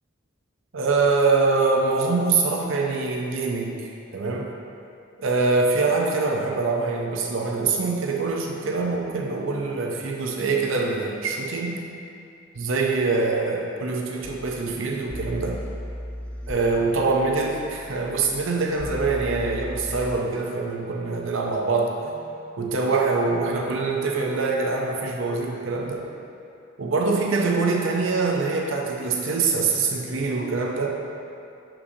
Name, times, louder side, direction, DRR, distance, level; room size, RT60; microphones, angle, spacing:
voice 1, 0.7-3.7 4.1-4.5 5.2-11.8 12.5-15.6 16.5-21.9 22.6-26.1 26.8-31.0, right 3 dB, 65° right, 0 dB, 0.6 m, -24 dB
sound 1, 14.2-21.5 22.0-23.2 23.9-26.0, equal, 5° left, 0.3 m, -39 dB
6.5 x 5.8 x 2.7 m, 2.6 s
head